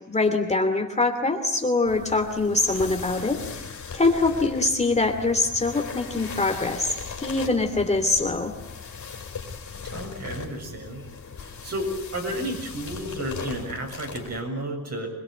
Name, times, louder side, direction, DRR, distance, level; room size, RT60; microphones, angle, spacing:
voice 1, 0.1-3.4 3.9-6.9 7.2-8.5, left 3 dB, 20° left, 5 dB, 2.8 m, -23 dB
sound 1, 1.9-14.4, left 5 dB, 70° left, 4.7 m, -38 dB
voice 2, 9.8-11.1 11.4-15.1, right 1 dB, 55° right, 1 dB, 7.4 m, -32 dB
26.5 x 22.0 x 9.3 m, 0.80 s
wide cardioid pair, 145°, 30 cm